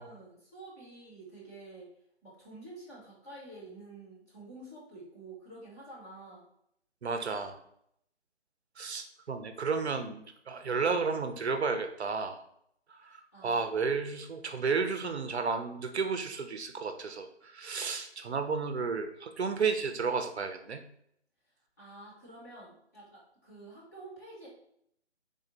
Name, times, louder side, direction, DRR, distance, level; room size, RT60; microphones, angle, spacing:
voice 1, 0.0-1.9 2.2-6.4 13.3-13.7 21.8-24.5, right 2 dB, 15° left, -8 dB, 0.8 m, -49 dB
voice 2, 7.0-7.6 8.8-12.4 12.9-20.8, right 5 dB, 70° right, 7 dB, 0.5 m, -32 dB
3.6 x 2.1 x 3.8 m, 0.72 s
figure-of-eight pair, 150°, 34 cm